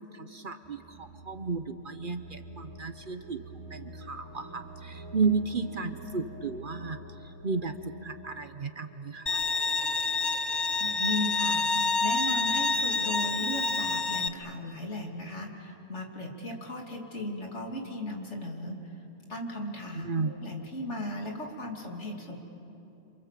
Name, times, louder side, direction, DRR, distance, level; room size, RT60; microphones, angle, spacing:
voice 1, 0.0-3.4 3.7-9.4 20.0-20.3, right 4 dB, 45° right, 9 dB, 1.0 m, -33 dB
sound 1, 0.6-10.5, equal, 20° right, 1.2 m, -48 dB
Bowed string instrument, 9.3-14.3, left 3 dB, 25° left, 0.7 m, -28 dB
voice 2, 10.6-18.8 19.3-20.1 20.4-22.4, left 1 dB, 65° left, 0 dB, 3.1 m, -36 dB
27.5 x 27.5 x 7.5 m, 2.9 s
omnidirectional pair, 1.3 m